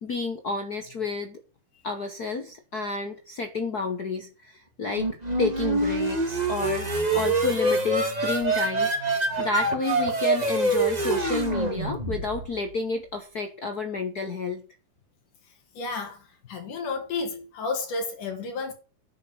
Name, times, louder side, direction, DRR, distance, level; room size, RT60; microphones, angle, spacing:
voice 1, 0.0-1.4 1.8-14.6, left 4 dB, 60° left, 0.9 m, -31 dB
sound 1, 4.9-12.6, right 2 dB, 20° right, 1.3 m, -25 dB
voice 2, 15.8-18.7, left 4 dB, 80° left, 3.9 m, -32 dB
10.0 x 6.7 x 7.2 m
omnidirectional pair, 3.6 m